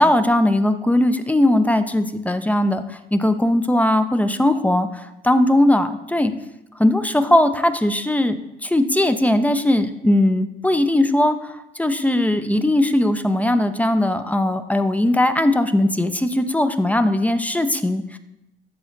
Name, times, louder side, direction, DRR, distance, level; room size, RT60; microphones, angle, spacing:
voice 1, 0.0-6.3 6.8-18.2, left 1 dB, 5° left, 9 dB, 0.4 m, -19 dB
12.0 x 4.1 x 2.5 m, 0.88 s
cardioid pair, 90°, 20 cm